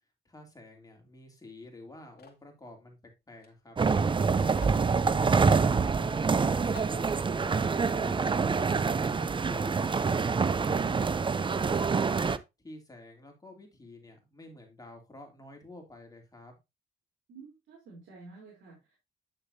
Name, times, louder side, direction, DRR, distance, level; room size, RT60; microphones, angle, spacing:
voice 1, 0.2-3.0 3.3-3.8 4.2-8.9 9.4-12.2 12.6-16.6, left 2 dB, 20° left, 2 dB, 3.0 m, -50 dB
sound 1, 2.2-2.5 3.4-3.5 3.8-3.9 4.5-4.9 5.6-5.8 6.2-6.3 6.8-7.0, left 7 dB, 50° left, 2.2 m, -51 dB
sound 2, 3.8-12.4, right 5 dB, 25° right, 0.6 m, -26 dB
voice 2, 17.3-19.0, right 3 dB, 75° right, -3 dB, 3.7 m, -51 dB
9.2 x 6.6 x 2.8 m, 0.23 s
cardioid pair, 90°, 20 cm